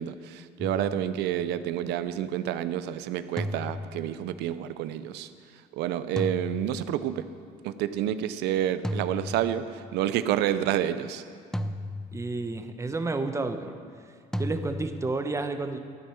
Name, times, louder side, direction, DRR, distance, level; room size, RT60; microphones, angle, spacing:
voice 1, 0.0-5.3 5.7-7.3 7.6-11.2, right 11 dB, 85° right, 12 dB, 0.7 m, -29 dB
sound 1, 0.6-1.6 3.4-4.5 6.2-7.3 8.8-10.0 11.5-12.7 14.3-15.2, left 1 dB, 5° left, 0.6 m, -35 dB
voice 2, 12.1-13.8 14.4-15.8, right 3 dB, 15° right, 7 dB, 1.0 m, -30 dB
13.5 x 9.3 x 7.1 m, 2.1 s
cardioid pair, 110°, 17 cm